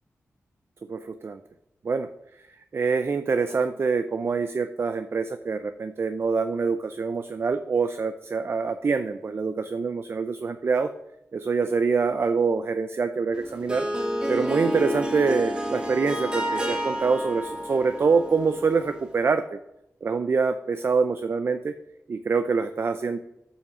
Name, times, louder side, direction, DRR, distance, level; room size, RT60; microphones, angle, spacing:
voice 1, 0.9-1.4 1.8-2.1 2.7-10.9 11.3-13.9 14.3-19.6 20.0-21.7 22.1-23.2, right 5 dB, 50° right, 10 dB, 0.4 m, -25 dB
Harp, 13.3-19.1, equal, 20° right, 1.1 m, -30 dB
7.2 x 5.6 x 6.1 m, 0.84 s
wide cardioid pair, 100°, 5 cm